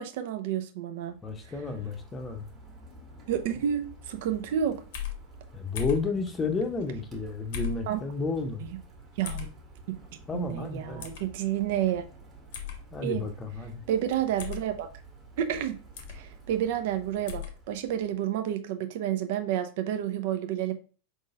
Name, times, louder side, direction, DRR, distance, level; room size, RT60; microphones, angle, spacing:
voice 1, 0.0-1.1 3.3-4.8 7.9-8.0 9.2-9.5 10.3-12.0 13.0-13.2 13.9-14.9 15.4-15.8 16.1-20.7, right 10 dB, 50° right, 7 dB, 0.6 m, -30 dB
Rain, 1.0-18.3, right 2 dB, 30° right, 1.6 m, -50 dB
voice 2, 1.2-2.5 5.5-8.7 10.3-11.1 12.9-13.8, left 4 dB, 20° left, 6 dB, 0.8 m, -32 dB
sound 1, 4.9-5.2 5.8-6.1 7.5-7.8 9.2-9.5 11.0-11.2 12.5-12.8 14.4-14.6 16.0-16.2 17.3-17.5, left 11 dB, 50° left, 0.9 m, -35 dB
5.0 x 3.9 x 2.4 m, 0.37 s
figure-of-eight pair, 90°, 0 cm